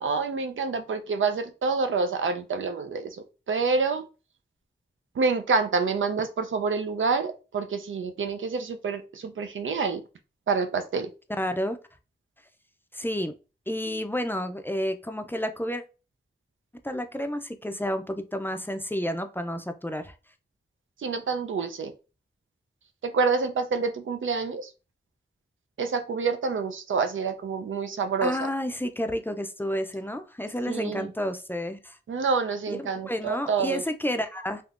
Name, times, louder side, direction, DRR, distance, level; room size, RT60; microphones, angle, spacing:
voice 1, 0.0-3.2 3.5-4.1 5.2-10.0 10.5-11.1 21.0-21.9 23.0-24.7 25.8-28.4 30.7-31.1 32.1-33.8, right 4 dB, 90° right, 9 dB, 0.5 m, -27 dB
voice 2, 11.3-11.8 12.9-13.3 13.7-15.8 16.8-20.1 28.2-32.0 32.7-34.6, equal, 10° left, 7 dB, 0.4 m, -30 dB
3.6 x 2.8 x 2.4 m, 0.32 s
wide cardioid pair, 70°, 20 cm